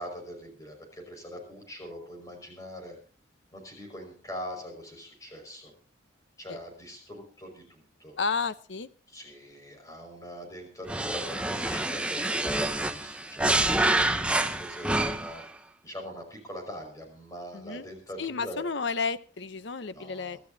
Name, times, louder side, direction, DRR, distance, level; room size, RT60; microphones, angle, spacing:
voice 1, 0.0-3.0 3.5-5.7 6.4-8.1 9.1-14.2 14.5-15.4 15.8-18.6 19.9-20.4, equal, 15° left, 3 dB, 5.3 m, -42 dB
voice 2, 8.2-8.9 17.5-17.8 18.2-20.4, left 4 dB, 65° left, 14 dB, 0.7 m, -32 dB
sound 1, 10.9-15.4, right 2 dB, 5° right, 0.7 m, -27 dB
24.0 x 12.5 x 2.7 m, 0.38 s
head